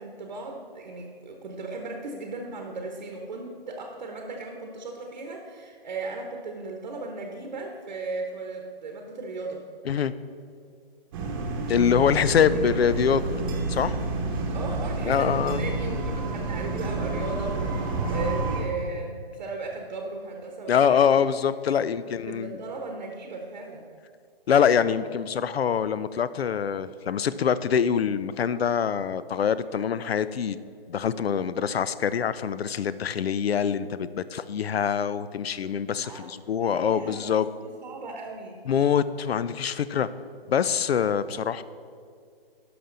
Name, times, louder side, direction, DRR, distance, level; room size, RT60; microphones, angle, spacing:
voice 1, 0.0-9.6 11.9-12.7 14.5-21.2 21.8-21.9 22.3-23.8 36.0-36.3 36.6-37.3 37.6-38.6, right 3 dB, 50° right, 2 dB, 1.0 m, -36 dB
sound 1, 11.1-18.6, right 2 dB, 25° right, 0.9 m, -29 dB
voice 2, 11.7-13.2 13.7-14.0 15.0-15.6 20.7-22.6 24.5-30.6 30.9-37.5 38.7-40.1 40.5-41.6, left 7 dB, 80° left, 15 dB, 0.5 m, -24 dB
11.0 x 5.9 x 3.8 m, 2.3 s
hypercardioid pair, 155°, 30 cm